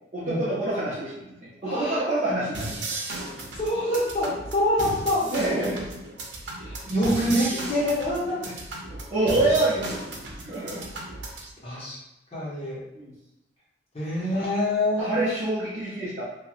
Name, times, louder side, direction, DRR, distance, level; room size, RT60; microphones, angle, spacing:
voice 1, 0.1-2.7 5.3-5.9 8.9-10.1 10.3-10.8 12.9-13.1 14.3-14.5 15.0-16.2, right 2 dB, 40° right, -10 dB, 0.7 m, -27 dB
voice 2, 1.6-2.1 3.5-5.3 6.6-8.5 10.7-11.0 11.6-12.0 12.3-12.8 13.9-15.3, left 1 dB, 35° left, -9 dB, 1.3 m, -26 dB
sound 1, 2.5-11.5, right 2 dB, 90° right, 0.7 m, -36 dB
3.0 x 2.8 x 2.5 m, 0.94 s
head